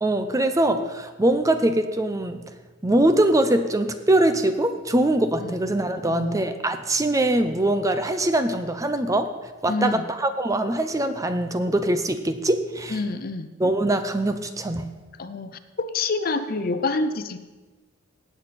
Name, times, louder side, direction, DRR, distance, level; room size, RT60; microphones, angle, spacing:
voice 1, 0.0-2.4 2.8-9.3 9.6-13.0 13.6-14.9, right 1 dB, 15° right, 9 dB, 0.6 m, -22 dB
voice 2, 6.0-6.4 9.7-10.0 12.9-13.5 15.2-17.4, left 3 dB, 45° left, 11 dB, 0.6 m, -27 dB
17.5 x 7.9 x 4.2 m, 1.3 s
head